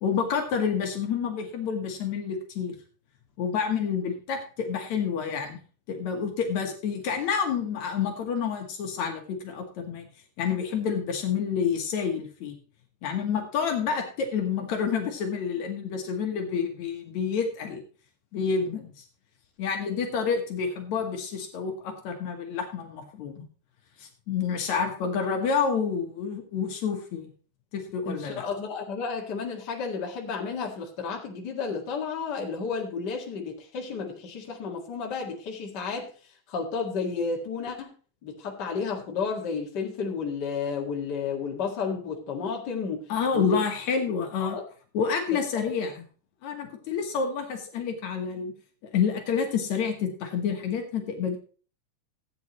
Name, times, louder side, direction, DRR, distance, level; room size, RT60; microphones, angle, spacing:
voice 1, 0.0-2.8 3.4-5.6 5.9-10.1 10.4-12.6 13.0-17.8 18.3-19.0 19.6-23.4 24.0-27.3 27.7-28.4 43.1-44.6 44.9-46.0 46.4-48.5 48.9-51.4, left 6 dB, 70° left, 4 dB, 2.6 m, -28 dB
voice 2, 28.1-36.1 36.5-37.9 38.2-43.0 43.3-43.4 44.4-44.6 45.6-45.7, left 5 dB, 40° left, 0 dB, 2.2 m, -32 dB
15.5 x 8.7 x 3.0 m, 0.39 s
omnidirectional pair, 3.4 m